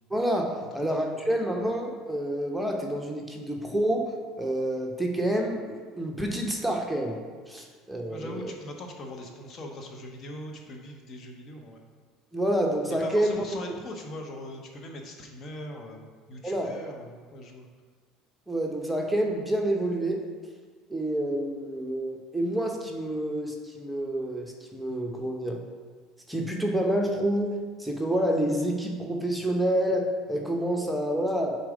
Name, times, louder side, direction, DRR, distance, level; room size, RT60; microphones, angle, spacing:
voice 1, 0.1-7.2 7.5-8.5 12.3-13.4 16.4-16.7 18.5-20.2 20.9-25.6 26.3-27.5 27.8-31.6, right 1 dB, ahead, 1 dB, 0.9 m, -28 dB
voice 2, 0.8-1.2 7.5-7.7 8.0-11.8 13.0-17.7, left 1 dB, 45° left, 3 dB, 0.8 m, -41 dB
4.7 x 4.1 x 5.0 m, 1.5 s
hypercardioid pair, 80°, 0 cm